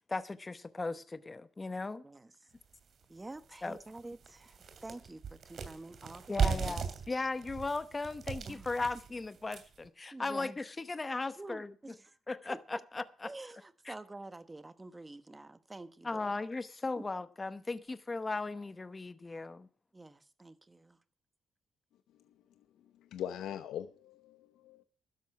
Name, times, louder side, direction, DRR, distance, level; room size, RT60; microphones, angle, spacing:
voice 1, 0.1-2.0 3.6-3.8 6.3-11.7 12.3-13.3 13.9-14.0 16.0-19.7, left 3 dB, 25° left, 0.9 m, -37 dB
sound 1, 2.8-2.9 3.4-3.5 3.8-9.9, right 6 dB, 55° right, 2.7 m, -37 dB
voice 2, 3.1-6.8 8.4-8.7 10.1-10.6 11.3-12.2 12.5-12.8 13.2-16.4 17.0-17.1 19.9-21.0, right 2 dB, 15° right, 1.3 m, -48 dB
voice 3, 23.0-24.8, left 10 dB, 85° left, 0.8 m, -41 dB
12.5 x 10.5 x 6.0 m
cardioid pair, 90°, 0 cm